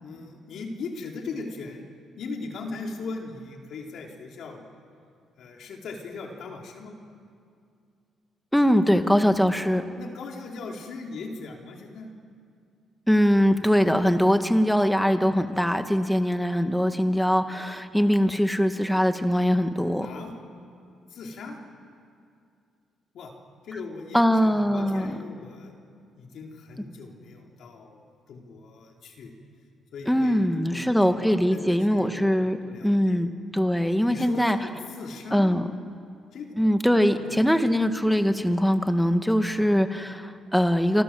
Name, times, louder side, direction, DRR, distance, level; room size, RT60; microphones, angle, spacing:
voice 1, 0.0-1.8 2.2-4.8 5.4-6.9 10.0-12.1 20.0-20.3 21.1-21.6 23.1-23.3 23.6-25.7 26.2-29.3 29.9-33.2 34.1-35.6 36.3-36.6 37.1-37.5 39.4-39.6, left 3 dB, 70° left, 1 dB, 4.2 m, -39 dB
voice 2, 8.5-9.8 13.1-20.1 24.1-25.2 30.1-32.6 32.8-34.6 35.3-35.6 36.6-41.0, equal, ahead, 7 dB, 1.8 m, -22 dB
27.5 x 26.5 x 7.9 m, 2.4 s
cardioid pair, 90°, 0 cm